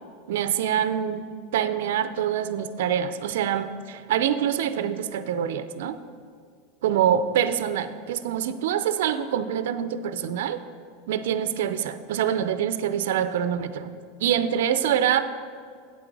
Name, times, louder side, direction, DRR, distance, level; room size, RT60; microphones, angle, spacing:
voice 1, 0.3-1.2 1.5-6.0 6.8-10.6 11.1-13.9 14.2-15.2, right 9 dB, 80° right, 11 dB, 0.5 m, -25 dB
8.4 x 7.7 x 4.7 m, 2.1 s
supercardioid pair, 150°, 0 cm